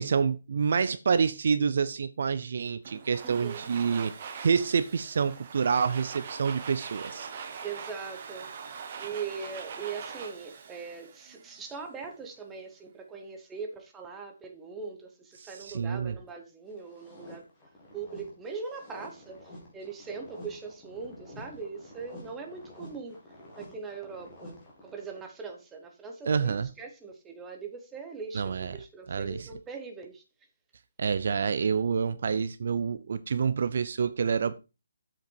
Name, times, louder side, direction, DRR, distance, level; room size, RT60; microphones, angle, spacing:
voice 1, 0.0-4.1 4.4-7.3 15.4-16.2 26.3-26.7 28.3-28.8 29.1-29.5 31.0-34.6, right 6 dB, 50° right, 0.5 m, -27 dB
Domestic sounds home sounds, 2.8-11.8, right 6 dB, 30° right, 1.1 m, -42 dB
voice 2, 3.2-3.7 7.6-8.5 9.0-17.4 17.9-23.2 23.6-30.2, right 5 dB, 5° right, 0.9 m, -41 dB
sound 1, 16.7-25.3, left 1 dB, 10° left, 2.2 m, -49 dB
7.7 x 5.8 x 4.5 m
hypercardioid pair, 175°, 0 cm